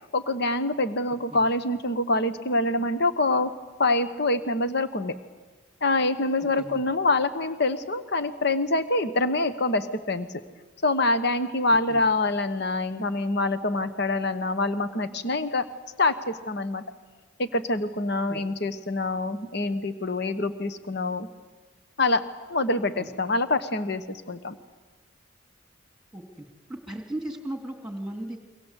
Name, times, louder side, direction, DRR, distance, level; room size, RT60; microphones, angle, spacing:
voice 1, 0.1-3.5 3.8-5.1 5.8-10.3 10.8-15.6 16.0-16.8 17.4-21.3 22.0-22.2 22.5-24.5, left 2 dB, 50° left, 11 dB, 1.1 m, -25 dB
voice 2, 26.1-28.4, right 1 dB, 5° right, 4 dB, 2.8 m, -36 dB
29.0 x 23.5 x 8.2 m, 1.3 s
head